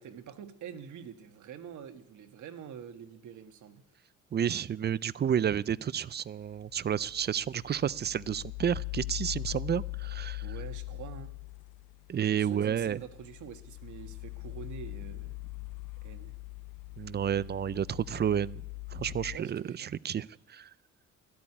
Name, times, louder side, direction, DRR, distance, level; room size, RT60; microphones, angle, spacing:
voice 1, 0.0-3.8 10.4-11.3 12.3-15.4 16.0-16.3 19.3-19.9, right 8 dB, 75° right, 8 dB, 1.5 m, -46 dB
voice 2, 4.3-10.4 12.1-13.0 17.0-18.6 18.9-20.7, right 9 dB, 35° right, 21 dB, 0.4 m, -31 dB
sound 1, 6.5-19.4, left 25 dB, 90° left, 0.7 m, -41 dB
13.0 x 8.7 x 9.9 m, 0.77 s
cardioid pair, 90°, 30 cm